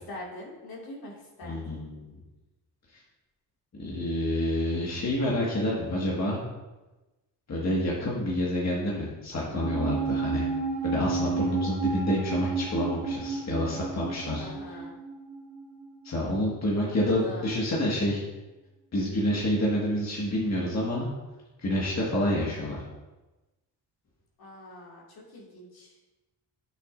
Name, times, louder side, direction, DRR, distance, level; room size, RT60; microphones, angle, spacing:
voice 1, 0.1-1.8 14.4-14.9 16.9-17.6 24.4-25.9, left 1 dB, 55° left, -3 dB, 2.5 m, -44 dB
voice 2, 1.4-2.2 3.8-6.4 7.5-10.5 10.8-14.8 16.0-18.2 18.9-21.1 21.6-22.8, left 1 dB, 40° left, -5 dB, 1.9 m, -28 dB
sound 1, 9.5-16.1 16.3-16.4, right 5 dB, 60° right, 1.0 m, -32 dB
8.2 x 7.1 x 2.6 m, 1.1 s
supercardioid pair, 55°, 43 cm